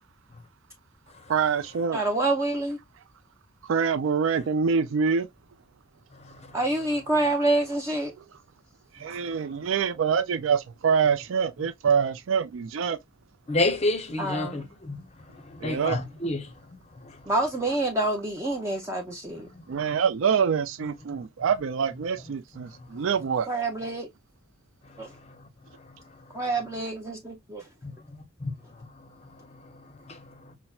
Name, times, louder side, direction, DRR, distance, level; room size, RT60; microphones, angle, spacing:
voice 1, 1.3-2.0 3.6-5.3 8.9-13.0 15.6-16.0 19.7-23.5, right 6 dB, 70° right, 0.4 m, -25 dB
voice 2, 1.9-2.8 6.5-8.1 14.2-14.6 17.3-19.5 23.5-24.1 25.0-25.1 26.3-27.7, right 2 dB, 15° right, 0.5 m, -27 dB
voice 3, 6.1-6.6 13.5-15.1 15.3-17.2 19.5-19.6 24.8-25.5 25.8-26.0 27.8-28.5 28.8-30.5, left 2 dB, 30° left, 0.6 m, -32 dB
5.5 x 2.0 x 2.3 m
head